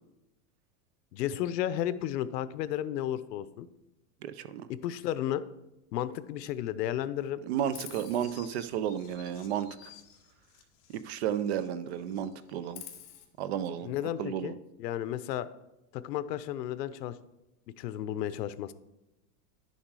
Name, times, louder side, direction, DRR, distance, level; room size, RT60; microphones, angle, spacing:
voice 1, 1.1-3.7 4.7-5.4 5.9-7.4 13.8-14.5 14.8-15.5 15.9-17.1 17.8-18.7, left 11 dB, 85° left, 14 dB, 0.8 m, -33 dB
voice 2, 4.2-4.7 7.4-9.9 10.9-12.8 13.4-14.5, right 9 dB, 45° right, 14 dB, 0.5 m, -33 dB
Chirp tweet, 7.7-11.7 12.0-13.2, left 10 dB, 45° left, 1.5 m, -50 dB
10.5 x 7.2 x 4.7 m, 0.94 s
supercardioid pair, 175°, 48 cm